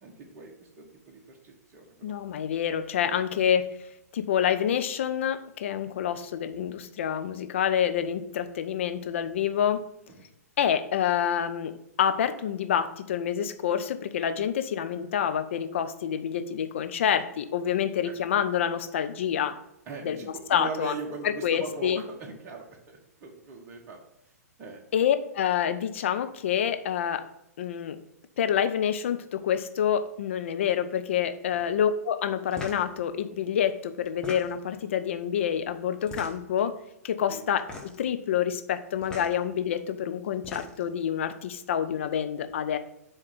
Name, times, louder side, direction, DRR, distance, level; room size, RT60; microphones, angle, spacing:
voice 1, 0.0-2.1 3.3-3.4 10.1-10.3 18.0-18.2 19.9-24.1 24.6-24.8 31.5-31.6 37.3-37.5, right 3 dB, 25° right, 0 dB, 1.2 m, -40 dB
voice 2, 2.0-3.7 4.1-9.8 10.6-19.6 20.0-20.2 20.5-20.9 21.2-22.0 24.9-27.2 27.6-28.0 28.4-36.8 37.0-42.8, left 9 dB, 50° left, 9 dB, 0.6 m, -27 dB
sound 1, 32.5-32.9 34.0-34.7 36.0-36.6 37.6-38.1 39.0-39.3 40.2-40.9, left 2 dB, 10° left, 1.1 m, -40 dB
7.4 x 3.2 x 5.7 m, 0.82 s
figure-of-eight pair, 115°, 9 cm